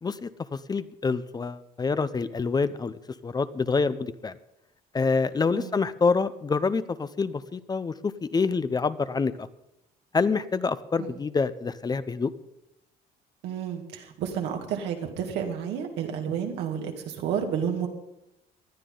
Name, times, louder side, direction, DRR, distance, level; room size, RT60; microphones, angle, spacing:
voice 1, 0.0-2.9 3.2-4.4 4.9-9.5 10.1-12.3, left 4 dB, 25° left, 14 dB, 0.6 m, -27 dB
voice 2, 13.4-17.9, right 8 dB, 85° right, 3 dB, 2.2 m, -31 dB
19.5 x 12.0 x 3.9 m, 0.86 s
cardioid pair, 110°, 17 cm